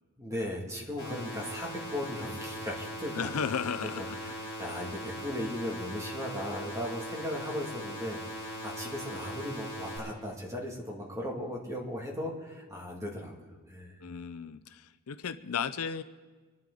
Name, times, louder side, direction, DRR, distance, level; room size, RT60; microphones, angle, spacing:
voice 1, 0.2-3.3 3.8-14.0, left 1 dB, 15° right, -2 dB, 2.2 m, -37 dB
sound 1, 1.0-10.0, equal, 20° left, 5.6 m, -40 dB
voice 2, 3.1-4.6 14.0-16.0, left 6 dB, 85° left, 12 dB, 0.6 m, -35 dB
26.0 x 11.5 x 3.9 m, 1.4 s
head